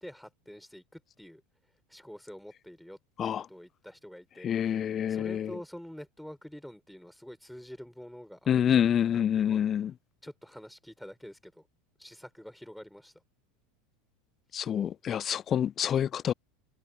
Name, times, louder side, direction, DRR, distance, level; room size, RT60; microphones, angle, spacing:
voice 1, 0.0-1.4 1.9-4.8 5.1-9.7 10.2-11.7 12.0-13.1, equal, ahead, 6.4 m, -47 dB
voice 2, 4.4-5.5 8.5-9.9 14.5-16.3, left 9 dB, 30° left, 0.4 m, -27 dB
figure-of-eight pair, 80°, 0 cm